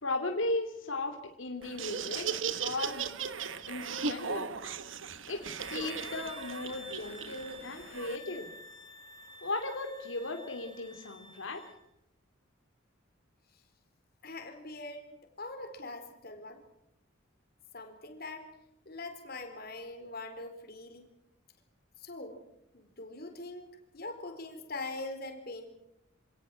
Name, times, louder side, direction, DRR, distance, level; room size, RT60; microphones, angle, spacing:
voice 1, 0.0-3.1 3.7-4.5 5.3-8.5 9.4-11.6, left 2 dB, 80° left, 3 dB, 2.6 m, -36 dB
Laughter, 1.6-8.2, right 6 dB, 75° right, 1.3 m, -37 dB
sound 1, 5.4-11.8, left 1 dB, 20° left, 5.9 m, -50 dB
voice 2, 14.2-16.6 17.7-18.5 18.9-21.1 22.0-22.4 22.7-23.7 23.9-25.7, left 2 dB, 50° left, 6 dB, 4.0 m, -42 dB
26.5 x 18.0 x 7.6 m, 0.83 s
head